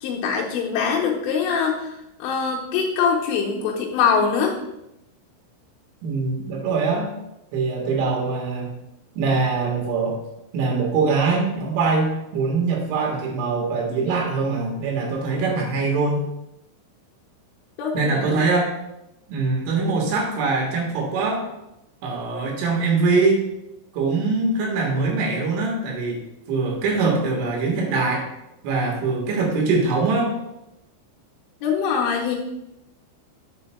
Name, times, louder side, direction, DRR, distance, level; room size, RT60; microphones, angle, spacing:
voice 1, 0.0-1.9 2.2-4.5 17.8-18.4 31.6-32.4, left 6 dB, 80° left, -1 dB, 3.3 m, -23 dB
voice 2, 6.0-7.1 7.5-8.7 9.2-10.2 10.5-16.2 17.9-18.7 19.3-21.5 22.0-23.4 23.9-26.2 26.5-28.3 28.6-30.3, right 4 dB, 75° right, -1 dB, 3.9 m, -23 dB
9.5 x 7.4 x 2.2 m, 0.87 s
omnidirectional pair, 5.8 m